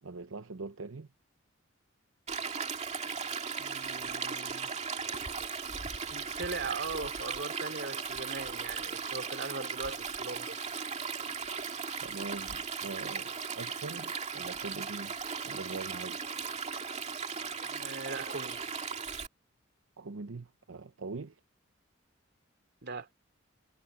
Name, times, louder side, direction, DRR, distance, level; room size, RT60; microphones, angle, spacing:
voice 1, 0.0-1.1 12.0-15.2 15.4-16.3 20.0-21.4, right 3 dB, 85° right, 0.7 m, -42 dB
Stream, 2.3-19.3, right 5 dB, 35° right, 2.3 m, -37 dB
voice 2, 3.6-4.7 6.1-10.7 17.5-18.6 22.8-23.1, right 3 dB, 55° right, 2.8 m, -40 dB
head